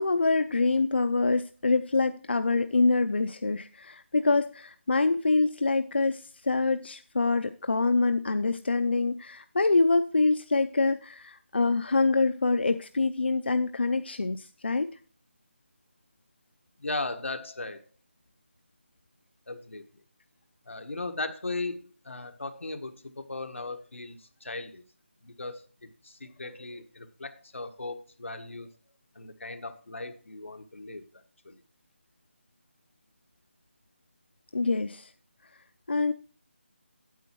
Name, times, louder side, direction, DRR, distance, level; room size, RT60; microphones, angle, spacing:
voice 1, 0.0-14.9 34.5-35.1 35.9-36.1, left 3 dB, 55° left, 10 dB, 0.5 m, -25 dB
voice 2, 16.8-17.8 19.5-19.9 20.7-24.8 25.2-28.7 29.1-31.0 31.4-31.6, left 2 dB, 90° left, 7 dB, 1.4 m, -37 dB
9.1 x 7.5 x 4.5 m, 0.39 s
figure-of-eight pair, 180°, 7 cm